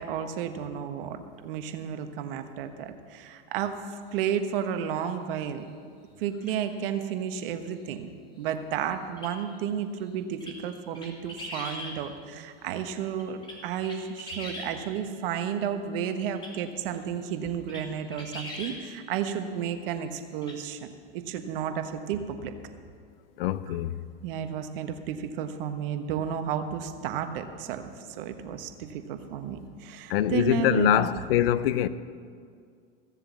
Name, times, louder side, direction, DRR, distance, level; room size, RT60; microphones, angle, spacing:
voice 1, 0.0-3.8 4.1-5.6 6.2-8.1 8.4-22.5 24.2-27.9 28.2-31.1, right 8 dB, 70° right, 1.3 m, -32 dB
sound 1, 6.4-6.6 9.2-9.3 10.4-10.6 10.9-12.0 13.2-14.7 16.3-16.5 17.1-17.2 17.7-17.8 18.1-18.8 20.4-20.6, left 1 dB, 15° left, 3.1 m, -40 dB
voice 2, 23.4-23.9 30.1-31.9, left 12 dB, 75° left, 0.7 m, -24 dB
16.0 x 7.5 x 7.4 m
hypercardioid pair, 115°, 29 cm